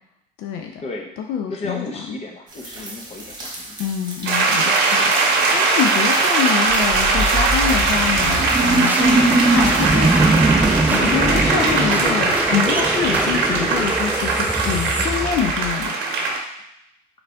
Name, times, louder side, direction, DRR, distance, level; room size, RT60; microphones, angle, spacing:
voice 1, 0.4-0.8 1.2-2.2 3.8-10.2 10.9-16.0, left 8 dB, 75° left, 3 dB, 0.5 m, -26 dB
voice 2, 1.5-3.8 12.8-12.9 14.9-15.0, left 3 dB, 40° left, 1 dB, 0.8 m, -33 dB
sound 1, 2.5-9.9, right 2 dB, 25° right, 1.1 m, -37 dB
sound 2, 4.2-16.4, right 3 dB, 90° right, 0.8 m, -20 dB
sound 3, 6.7-15.8, right 2 dB, 10° right, 0.3 m, -21 dB
3.9 x 3.3 x 3.4 m, 0.81 s
cardioid pair, 110°, 17 cm